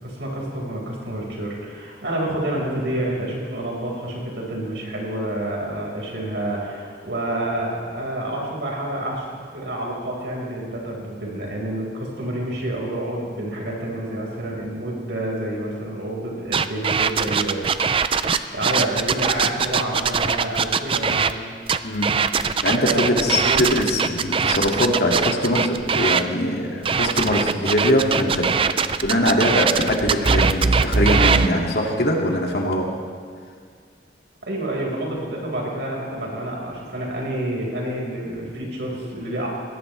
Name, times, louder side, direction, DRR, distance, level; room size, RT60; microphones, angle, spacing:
voice 1, 0.0-17.6 18.1-21.5 22.8-24.0 34.4-39.5, right 1 dB, 80° right, -2 dB, 4.9 m, -28 dB
sound 1, 16.5-21.3 21.7-26.2 26.9-31.5, right 5 dB, 30° right, 0.4 m, -21 dB
voice 2, 22.6-28.7 29.0-32.9, left 1 dB, 65° left, 0 dB, 2.2 m, -22 dB
21.0 x 17.0 x 3.3 m, 2.1 s
head